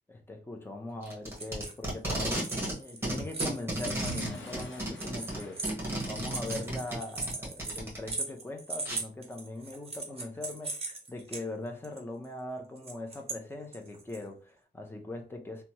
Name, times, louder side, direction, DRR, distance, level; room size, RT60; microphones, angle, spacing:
voice 1, 0.1-5.7 6.0-15.6, left 2 dB, 10° left, 0.5 m, -41 dB
Packing tape duct tape, 1.0-2.8 3.0-8.1 8.9-9.0, right 1 dB, 10° right, 1.1 m, -34 dB
sound 1, 1.4-1.9 2.2-11.4 11.8-12.0 12.8-13.4 13.7-14.2, right 3 dB, 30° right, 0.6 m, -39 dB
Explosion / Shatter, 4.1-6.9, left 3 dB, 85° left, 0.7 m, -48 dB
2.9 x 2.2 x 2.8 m
wide cardioid pair, 135°, 19 cm